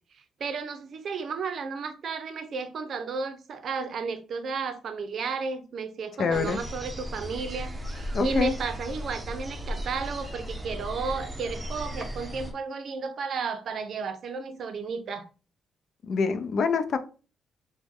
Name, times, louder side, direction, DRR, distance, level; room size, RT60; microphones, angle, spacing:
voice 1, 0.4-15.3, right 4 dB, 60° right, 0.5 m, -33 dB
voice 2, 6.2-6.6 8.1-8.5 16.0-17.0, left 5 dB, 55° left, 0.5 m, -26 dB
sound 1, 6.3-12.5, equal, 20° right, 0.7 m, -36 dB
3.0 x 2.1 x 3.5 m
cardioid pair, 90°, 0 cm